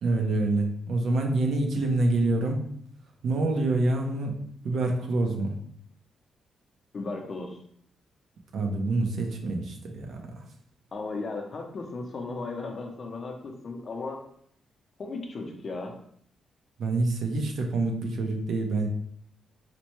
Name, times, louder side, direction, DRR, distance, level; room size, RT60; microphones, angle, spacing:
voice 1, 0.0-2.7 3.2-4.4 4.6-5.5 8.5-10.4 16.8-18.9, right 2 dB, 65° right, 3 dB, 0.6 m, -26 dB
voice 2, 6.9-7.6 10.9-14.2 15.0-15.9, left 3 dB, 40° left, 2 dB, 0.5 m, -35 dB
4.2 x 2.1 x 3.0 m, 0.66 s
cardioid pair, 145°, 0 cm